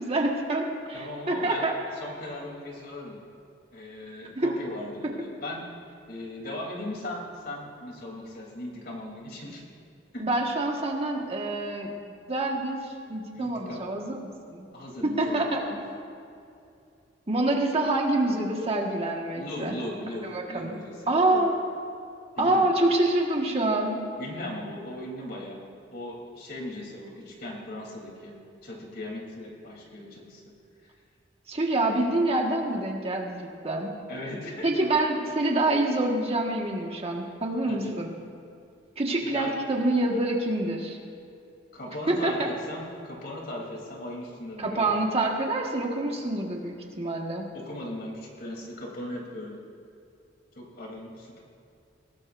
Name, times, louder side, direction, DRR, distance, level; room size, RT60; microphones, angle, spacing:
voice 1, 0.0-1.7 4.3-4.5 5.0-5.1 10.2-11.9 12.3-14.7 15.0-15.6 17.3-19.8 20.2-20.7 21.1-21.5 22.4-24.0 31.5-33.9 34.6-38.1 39.0-41.0 42.1-42.5 44.6-47.5, right 2 dB, 35° right, 0 dB, 1.6 m, -26 dB
voice 2, 0.9-1.7 2.0-3.2 3.7-5.6 6.1-9.6 10.1-10.2 13.3-13.8 14.7-15.8 19.3-21.4 22.3-22.7 24.2-25.6 25.9-28.4 28.6-30.4 30.8-30.9 34.1-34.7 37.7-37.9 39.3-39.5 41.7-44.9 47.5-49.6 50.5-51.4, left 1 dB, 60° left, -2 dB, 3.3 m, -38 dB
21.5 x 18.0 x 2.6 m, 2.6 s
head